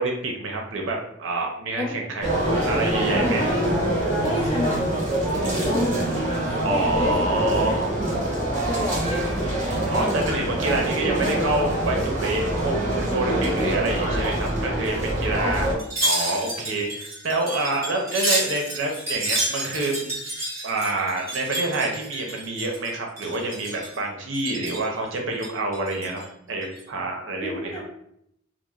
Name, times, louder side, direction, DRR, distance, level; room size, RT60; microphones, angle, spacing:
voice 1, 0.0-2.3 2.7-3.4 6.6-7.9 9.9-12.7 13.0-15.7 16.0-20.1 20.6-26.2 26.5-27.8, right 2 dB, 70° right, 0 dB, 0.6 m, -27 dB
sound 1, 2.2-15.7, right 1 dB, 40° right, 1.0 m, -25 dB
voice 2, 3.2-3.8 4.2-7.3 7.7-9.6 15.3-15.6 27.4-27.8, left 1 dB, 30° left, -3 dB, 0.6 m, -30 dB
Wind chime, 15.8-22.9 23.2-24.0 24.3-24.9 25.3-26.2 26.6-26.8, right 1 dB, 15° right, 1.1 m, -29 dB
2.9 x 2.0 x 2.3 m, 0.74 s
head